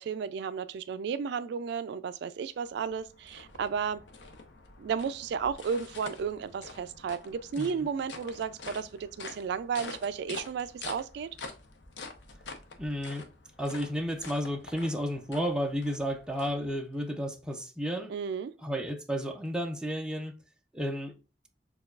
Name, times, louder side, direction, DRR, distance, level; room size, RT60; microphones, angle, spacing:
voice 1, 0.0-4.0 4.8-11.3 18.1-18.5, right 6 dB, 65° right, 0.3 m, -33 dB
sound 1, 2.6-17.1, left 3 dB, 75° left, 0.7 m, -47 dB
voice 2, 7.6-7.9 12.8-13.3 13.6-18.2 18.6-20.3 20.7-21.2, equal, 5° right, 0.5 m, -32 dB
6.5 x 2.3 x 2.4 m
head